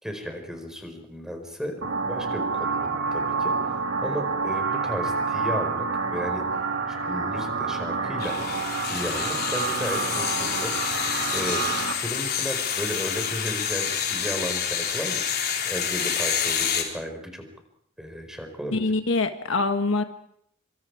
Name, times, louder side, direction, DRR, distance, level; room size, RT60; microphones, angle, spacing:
voice 1, 0.0-3.7 4.0-6.4 6.9-8.4 8.8-10.7 11.3-11.7 12.0-15.2 15.6-17.4 18.0-18.8, equal, 5° right, 5 dB, 4.8 m, -34 dB
sound 1, 1.8-11.9, right 4 dB, 70° right, 3.9 m, -28 dB
sound 2, 8.2-16.8, left 7 dB, 50° left, 4.0 m, -28 dB
voice 2, 18.7-20.0, left 3 dB, 70° left, 7 dB, 1.5 m, -24 dB
26.5 x 25.5 x 4.9 m, 0.69 s
head